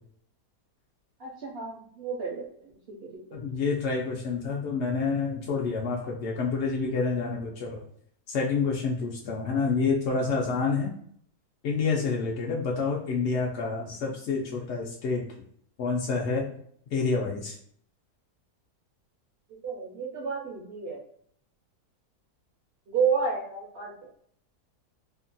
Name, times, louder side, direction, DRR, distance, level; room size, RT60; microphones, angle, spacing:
voice 1, 1.2-3.0 3.3-3.4 19.5-21.0 22.9-23.9, right 5 dB, 65° right, -2 dB, 0.6 m, -31 dB
voice 2, 3.3-7.8 8.3-10.9 11.6-15.2 15.8-16.4 16.9-17.6, left 4 dB, 75° left, -2 dB, 0.6 m, -28 dB
2.8 x 2.2 x 2.5 m, 0.64 s
omnidirectional pair, 1.7 m